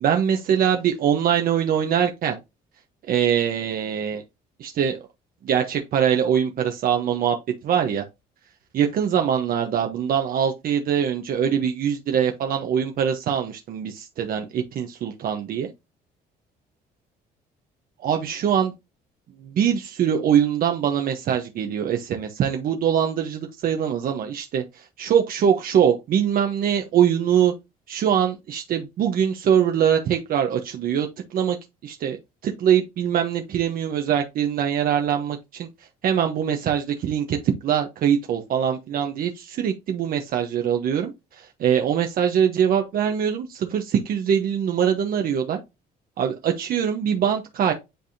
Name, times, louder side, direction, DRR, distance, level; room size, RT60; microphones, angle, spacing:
voice 1, 0.0-2.4 3.1-4.2 4.6-5.1 5.4-7.4 7.6-8.0 8.7-15.7 18.0-18.7 19.4-27.5 27.9-31.6 31.8-32.2 32.4-35.7 36.0-45.6 46.2-47.7, right 8 dB, 60° right, 1.0 m, -23 dB
10.0 x 3.4 x 2.7 m
cardioid pair, 110°, 17 cm